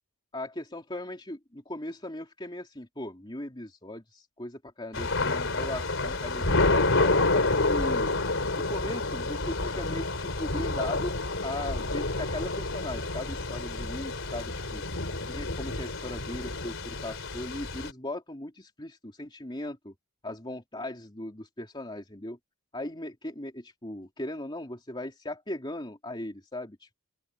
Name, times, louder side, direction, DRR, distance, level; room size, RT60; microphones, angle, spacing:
voice 1, 0.3-8.1 8.6-11.1 11.4-14.8 15.2-19.9 20.2-22.4 22.7-27.0, left 1 dB, 20° left, 3.1 m, -38 dB
Thunder / Rain, 4.9-17.9, left 2 dB, 60° left, 4.0 m, -29 dB
open air
head